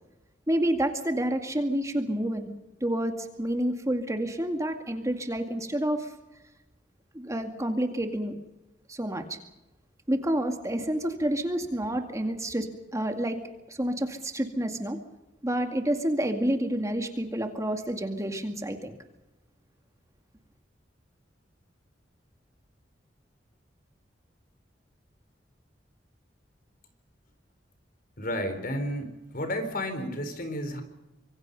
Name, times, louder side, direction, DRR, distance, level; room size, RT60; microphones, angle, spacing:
voice 1, 0.5-2.5 2.8-6.1 7.1-8.4 8.9-9.4 10.1-13.4 13.7-15.0 15.4-18.9, right 1 dB, 20° right, 5 dB, 2.2 m, -29 dB
voice 2, 28.2-30.8, left 1 dB, 55° left, 8 dB, 4.2 m, -32 dB
25.5 x 23.5 x 5.4 m, 1.0 s
head